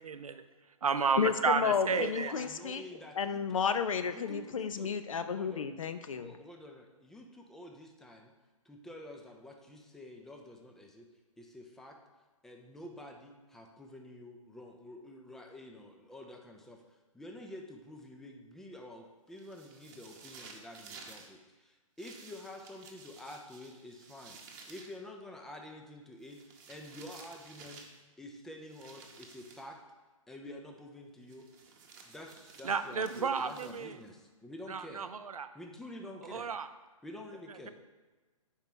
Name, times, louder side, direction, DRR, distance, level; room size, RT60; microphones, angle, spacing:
voice 1, 0.0-0.4 0.8-2.3 32.6-34.0 34.7-35.5 36.3-36.7, right 5 dB, 80° right, 10 dB, 0.5 m, -32 dB
voice 2, 1.2-2.8 3.2-6.3, left 6 dB, 65° left, 10 dB, 0.5 m, -32 dB
voice 3, 1.9-3.6 4.1-4.9 5.3-5.7 6.1-8.3 8.7-11.1 11.4-12.0 12.4-26.4 26.7-27.9 28.2-29.8 30.3-31.5 32.0-35.1 35.5-36.5 37.0-37.7, left 1 dB, ahead, 2 dB, 0.3 m, -49 dB
sound 1, 19.4-21.3 22.0-25.0 26.2-28.0 28.7-29.7 31.3-34.1, right 4 dB, 35° right, 0.8 m, -53 dB
4.7 x 4.5 x 5.3 m, 1.3 s
figure-of-eight pair, 130°, 18 cm